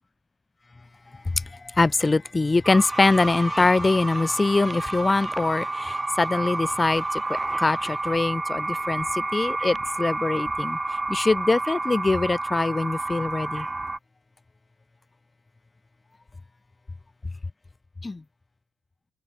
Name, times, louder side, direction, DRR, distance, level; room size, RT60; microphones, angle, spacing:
voice 1, 1.6-10.8 11.1-13.6 18.0-18.2, left 3 dB, 20° left, 1.7 m, -23 dB
sound 1, 2.6-14.0, right 2 dB, 15° right, 3.0 m, -30 dB
cardioid pair, 140°, 0 cm